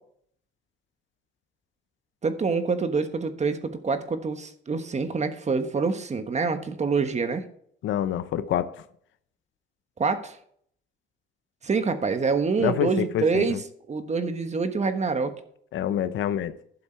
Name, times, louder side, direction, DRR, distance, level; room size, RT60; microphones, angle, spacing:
voice 1, 2.2-7.4 10.0-10.4 11.6-13.6 13.9-15.3, right 4 dB, 35° right, 1.3 m, -26 dB
voice 2, 7.8-8.7 12.6-13.6 15.7-16.5, left 10 dB, 75° left, 0.8 m, -26 dB
11.5 x 7.3 x 4.6 m
cardioid pair, 90°, 20 cm